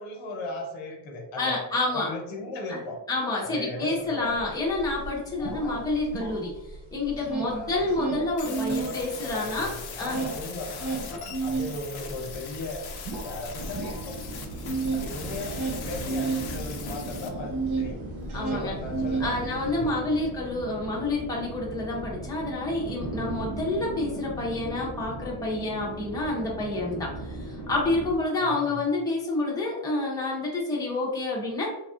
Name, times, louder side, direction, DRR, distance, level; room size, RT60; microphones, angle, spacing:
voice 1, 0.0-1.6 1.9-3.0 3.3-4.4 5.4-5.8 7.4-8.0 8.6-14.2 14.9-18.0 18.3-19.3 19.7-19.9 28.3-28.8, left 2 dB, 75° left, 1 dB, 0.9 m, -37 dB
voice 2, 1.4-2.1 2.7-2.8 3.1-6.5 6.9-10.2 18.3-18.7 19.2-31.7, left 2 dB, 10° left, -4 dB, 0.6 m, -28 dB
sound 1, 4.4-4.5 4.8-6.8 7.0-8.9 9.3-17.9 18.2-19.7, right 4 dB, 55° right, 0.9 m, -32 dB
sound 2, 8.4-17.3, left 6 dB, 55° left, 0.6 m, -41 dB
sound 3, 13.6-28.2, right 1 dB, 85° right, 0.8 m, -38 dB
3.3 x 2.4 x 2.4 m, 0.93 s
cardioid pair, 125°, 48 cm